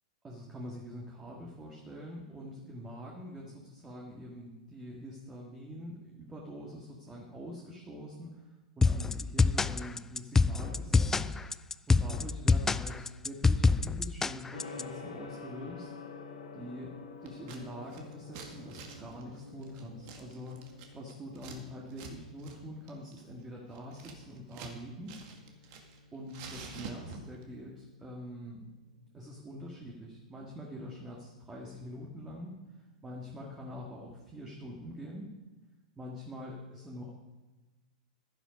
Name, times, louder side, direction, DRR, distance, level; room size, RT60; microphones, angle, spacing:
voice 1, 0.2-8.5 8.8-15.9 16.5-25.2 25.6-25.8 26.1-28.7 29.1-35.3 36.0-37.1, equal, 15° right, -2 dB, 2.1 m, -45 dB
sound 1, 8.8-14.8, left 4 dB, 10° left, 0.3 m, -26 dB
Gong, 14.5-33.5, left 4 dB, 85° left, 3.1 m, -51 dB
Scissors, 17.3-17.6 17.9-21.6 21.9-22.1 22.4-22.6 22.9-24.8 25.1-26.0 26.3-27.4, right 4 dB, 50° right, 2.2 m, -47 dB
11.5 x 10.0 x 5.4 m, 1.2 s
hypercardioid pair, 110°, 4 cm